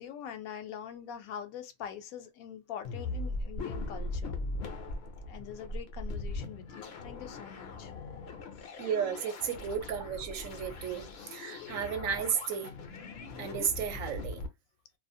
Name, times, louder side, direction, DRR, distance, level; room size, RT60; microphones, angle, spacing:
voice 1, 0.0-4.4 5.3-7.9, left 9 dB, 80° left, 1.0 m, -43 dB
sound 1, 2.8-14.5, left 2 dB, 60° left, 0.7 m, -40 dB
voice 2, 8.8-12.7 13.4-14.4, right 7 dB, 75° right, 0.9 m, -33 dB
2.5 x 2.0 x 2.6 m
omnidirectional pair, 1.5 m